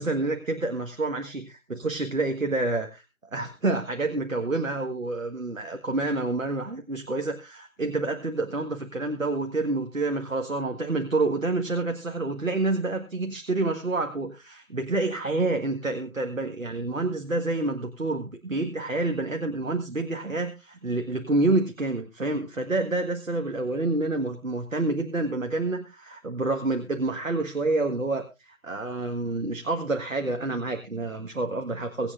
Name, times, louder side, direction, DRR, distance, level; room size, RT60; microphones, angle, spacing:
voice 1, 0.0-3.0 3.3-32.1, right 2 dB, 65° right, 5 dB, 1.7 m, -28 dB
23.5 x 8.5 x 2.5 m, 0.26 s
figure-of-eight pair, 165°, 42 cm